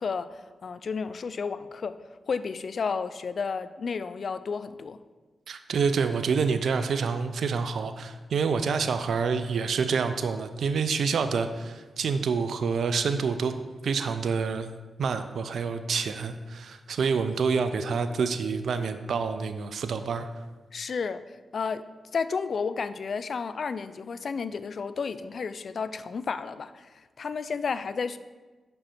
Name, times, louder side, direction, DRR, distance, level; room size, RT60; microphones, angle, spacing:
voice 1, 0.0-2.0 2.3-5.0 20.7-21.2 21.5-21.8 22.1-28.2, left 5 dB, 60° left, 12 dB, 0.3 m, -32 dB
voice 2, 5.5-13.5 13.8-14.7 15.0-20.3, right 5 dB, 70° right, 10 dB, 0.4 m, -27 dB
5.6 x 5.2 x 4.3 m, 1.3 s
supercardioid pair, 45°, 0 cm